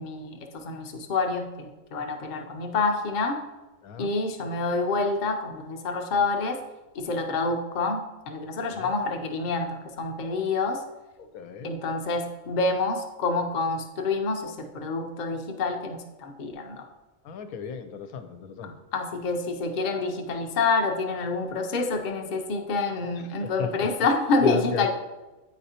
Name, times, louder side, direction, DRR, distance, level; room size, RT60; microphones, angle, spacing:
voice 1, 0.0-3.4 4.0-6.6 6.9-10.8 11.6-16.9 18.9-24.9, left 3 dB, 50° left, 3 dB, 0.6 m, -27 dB
voice 2, 8.6-8.9 11.2-11.7 17.2-18.8 23.4-23.9 24.4-24.9, left 7 dB, 90° left, 9 dB, 1.1 m, -35 dB
9.1 x 4.2 x 2.8 m, 1.1 s
omnidirectional pair, 1.5 m